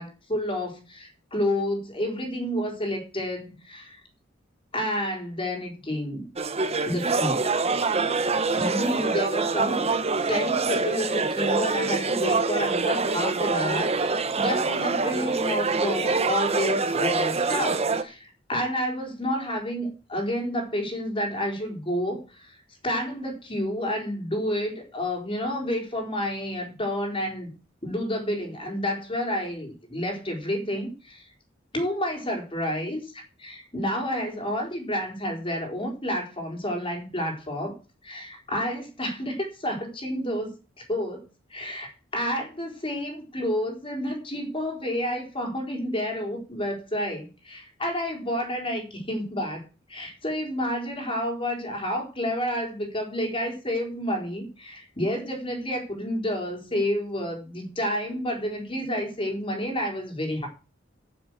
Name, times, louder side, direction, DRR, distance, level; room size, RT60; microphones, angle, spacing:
voice 1, 0.0-4.0 4.7-6.3 6.9-7.4 8.6-9.9 10.3-22.6 22.8-27.5 27.8-31.3 31.7-37.8 38.0-49.6 49.9-60.5, equal, 30° left, 1 dB, 4.2 m, -30 dB
sound 1, 6.4-18.0, right 4 dB, 35° right, 1.1 m, -25 dB
11.0 x 7.3 x 7.5 m, 0.33 s
head